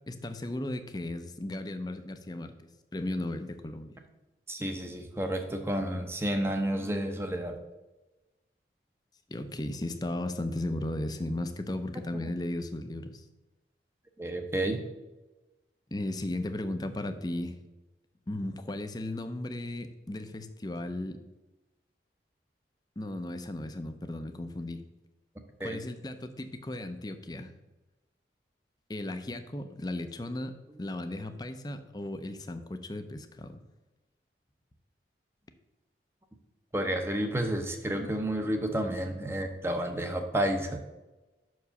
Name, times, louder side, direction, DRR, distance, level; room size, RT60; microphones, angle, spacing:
voice 1, 0.1-2.5 2.9-4.0 9.3-13.2 15.9-17.6 18.3-21.2 23.0-24.8 25.6-27.5 28.9-33.6, left 1 dB, 20° left, 8 dB, 0.5 m, -36 dB
voice 2, 4.5-7.6 14.2-14.8 25.6-25.8 36.7-40.8, right 1 dB, 15° right, 4 dB, 0.7 m, -30 dB
6.2 x 4.8 x 6.7 m, 1.1 s
head